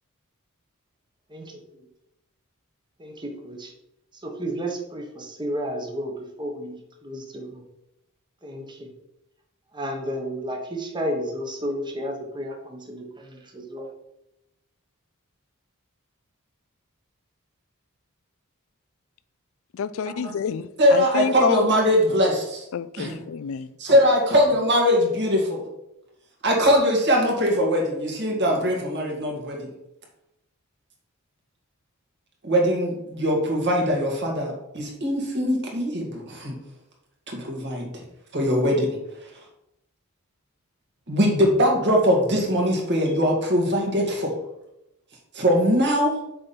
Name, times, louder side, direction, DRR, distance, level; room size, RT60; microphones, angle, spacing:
voice 1, 3.0-3.7 4.2-7.6 8.4-8.9 9.7-13.9, equal, 20° right, 1.2 m, -32 dB
voice 2, 19.7-21.7 22.7-23.7, left 7 dB, 65° left, 0.4 m, -28 dB
voice 3, 20.8-22.7 23.0-23.2 23.8-25.7 26.4-29.7 32.4-36.5 37.3-38.0 38.3-38.9 41.1-44.3 45.3-46.2, equal, 55° right, 2.1 m, -21 dB
6.8 x 4.3 x 5.3 m
head